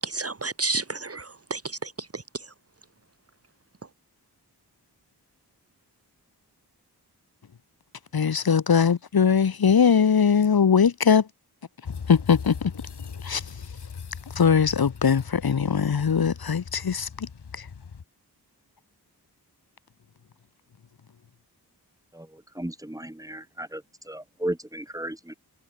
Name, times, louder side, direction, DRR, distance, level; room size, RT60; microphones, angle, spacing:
voice 1, 0.0-2.5, right 3 dB, 35° right, 1.4 m, -31 dB
voice 2, 8.1-11.3 12.1-12.7 13.2-13.5 14.3-17.3 17.5-17.7, left 6 dB, 65° left, 1.5 m, -21 dB
sound 1, 11.8-18.0, left 6 dB, 85° left, 5.8 m, -39 dB
voice 3, 22.1-23.8 24.1-25.3, right 1 dB, 10° right, 2.8 m, -34 dB
wide cardioid pair, 70°, 39 cm